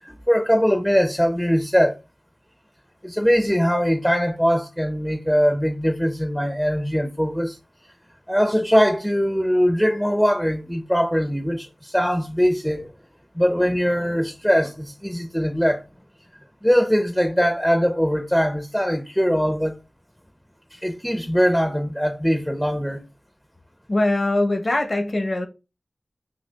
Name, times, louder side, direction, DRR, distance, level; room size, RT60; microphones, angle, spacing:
voice 1, 0.0-2.0 3.0-7.6 8.3-12.9 13.3-15.8 16.6-19.8 20.7-23.0, equal, 5° left, 0.5 m, -21 dB
voice 2, 23.9-25.5, left 2 dB, 55° left, 0.8 m, -22 dB
5.9 x 2.3 x 2.3 m
wide cardioid pair, 55°, 0 cm